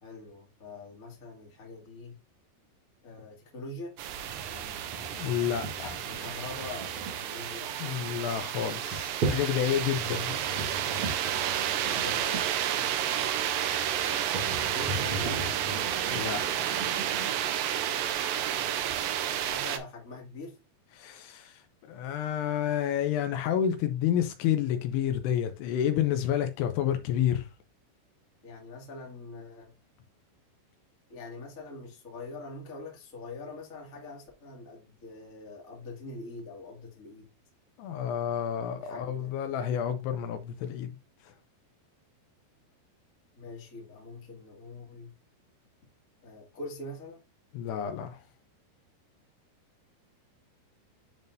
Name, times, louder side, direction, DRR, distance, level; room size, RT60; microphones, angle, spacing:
voice 1, 0.0-2.2 3.0-4.0 4.5-5.1 6.1-8.0 11.8-12.6 13.8-15.5 19.3-20.6 28.4-29.7 31.1-37.3 38.8-39.3 43.3-45.1 46.2-47.2, left 2 dB, 35° left, 1.5 m, -44 dB
sound 1, 4.0-19.8, right 10 dB, 90° right, 2.0 m, -31 dB
sound 2, 4.2-17.5, right 2 dB, 55° right, 1.4 m, -38 dB
voice 2, 5.1-6.0 7.8-10.4 16.1-16.7 21.0-21.6 21.9-27.5 37.8-41.0 47.5-48.2, left 9 dB, 80° left, 2.7 m, -30 dB
10.5 x 3.6 x 2.6 m
omnidirectional pair, 4.9 m